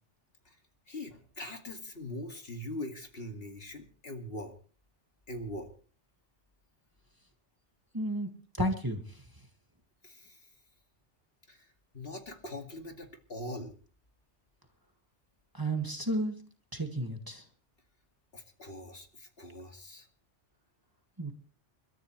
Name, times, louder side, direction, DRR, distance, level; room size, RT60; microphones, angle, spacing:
voice 1, 0.9-4.5 5.3-5.7 10.0-10.6 11.5-13.8 18.3-20.1, left 1 dB, 55° left, 4 dB, 2.5 m, -42 dB
voice 2, 7.9-8.3 8.6-9.3 15.5-16.4 16.7-17.5 21.2-21.3, right 1 dB, 20° right, 4 dB, 2.0 m, -32 dB
29.5 x 13.5 x 3.2 m, 0.39 s
omnidirectional pair, 1.2 m